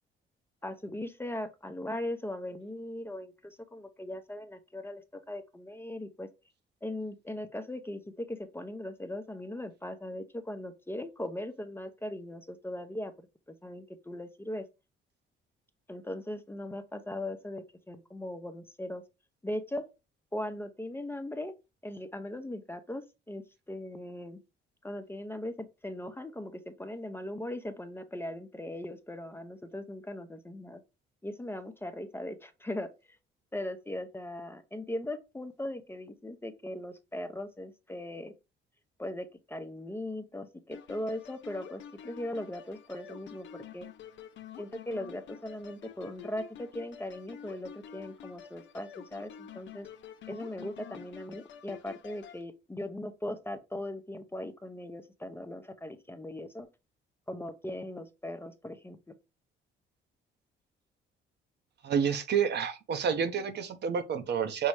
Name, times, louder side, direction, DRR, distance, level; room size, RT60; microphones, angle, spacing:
voice 1, 0.6-6.3 6.8-13.1 13.6-14.6 15.9-19.0 19.4-19.8 20.3-21.5 21.8-24.4 24.8-30.8 31.2-32.9 33.5-38.3 39.0-43.9 44.6-49.9 50.3-56.7 57.3-59.0, left 1 dB, 10° left, 0.6 m, -39 dB
sound 1, 40.7-52.4, left 9 dB, 70° left, 0.6 m, -48 dB
voice 2, 61.8-64.7, right 7 dB, 60° right, 0.7 m, -29 dB
5.4 x 2.0 x 4.7 m
cardioid pair, 90°, 20 cm